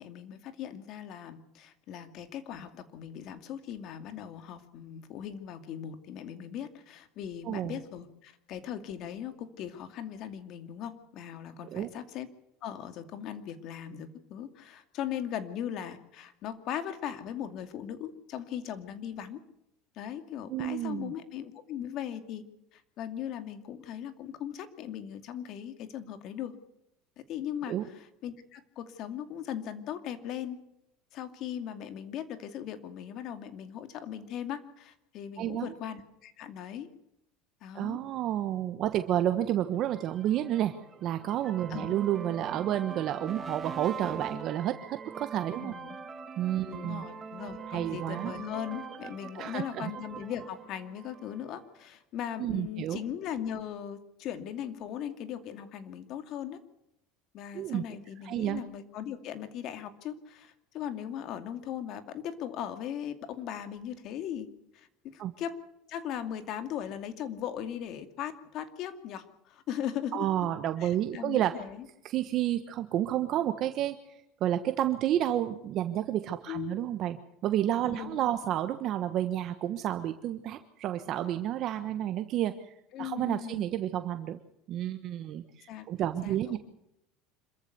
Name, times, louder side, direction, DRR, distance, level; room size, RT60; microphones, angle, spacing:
voice 1, 0.0-12.3 12.6-19.4 20.0-22.4 22.7-26.5 27.2-30.6 31.1-36.9 37.6-38.0 41.7-42.0 45.6-46.0 46.7-56.6 57.3-64.5 64.7-65.6 65.9-70.3 70.8-71.9 76.5-76.8 77.8-78.4 82.9-83.6 85.7-86.6, left 9 dB, 50° left, 9 dB, 2.5 m, -39 dB
voice 2, 7.4-7.8 11.7-11.9 20.5-21.1 27.7-27.9 35.4-35.7 37.7-40.7 41.0-45.8 46.4-47.0 47.7-48.3 49.3-49.9 52.4-53.0 57.5-57.8 58.2-58.6 65.2-65.3 70.1-71.6 72.0-74.0 74.4-77.2 77.4-84.4 84.7-86.6, right 12 dB, 50° right, 9 dB, 1.3 m, -30 dB
sound 1, 39.9-51.7, right 5 dB, 25° right, 2.4 m, -43 dB
26.5 x 14.5 x 6.9 m, 0.83 s
supercardioid pair, 125°, 0 cm